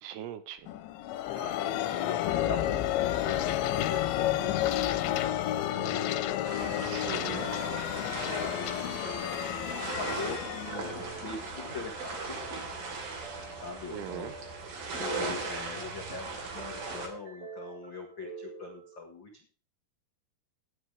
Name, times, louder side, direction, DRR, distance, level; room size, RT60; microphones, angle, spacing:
voice 1, 0.0-0.6 6.8-7.5 13.9-14.3, right 11 dB, 75° right, 12 dB, 2.6 m, -39 dB
sound 1, 0.7-12.2, left 13 dB, 90° left, 3.3 m, -31 dB
sound 2, 1.1-19.0, right 1 dB, 20° left, 6.3 m, -48 dB
voice 2, 1.3-6.8 7.9-12.4 13.5-19.4, left 5 dB, 70° left, 3 dB, 1.1 m, -42 dB
sound 3, 6.4-17.1, right 4 dB, 55° right, 4.3 m, -38 dB
17.5 x 8.1 x 3.5 m, 0.42 s
omnidirectional pair, 5.0 m